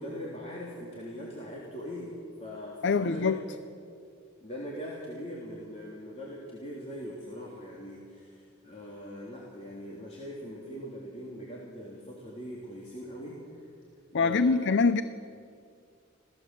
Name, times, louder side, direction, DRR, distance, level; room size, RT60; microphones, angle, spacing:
voice 1, 0.0-2.1 2.4-3.4 4.4-13.4 14.1-14.7, equal, 30° left, -4 dB, 3.4 m, -41 dB
voice 2, 2.8-3.4 14.1-15.0, left 4 dB, 60° left, 13 dB, 0.6 m, -24 dB
26.5 x 17.5 x 7.8 m, 2.4 s
head